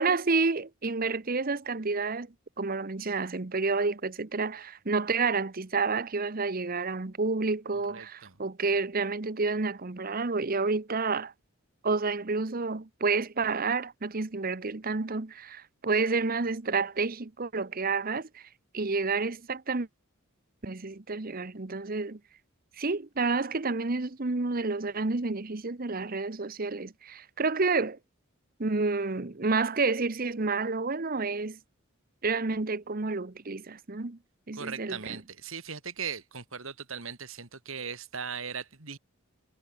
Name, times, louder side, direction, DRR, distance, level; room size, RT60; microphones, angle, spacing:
voice 1, 0.0-2.3 2.6-11.3 11.8-18.4 18.7-19.9 20.6-22.2 22.8-28.0 28.6-31.6 32.2-34.2 34.5-35.2, right 4 dB, 40° right, 1.0 m, -29 dB
voice 2, 7.7-8.3 34.6-39.0, right 6 dB, 65° right, 2.6 m, -39 dB
head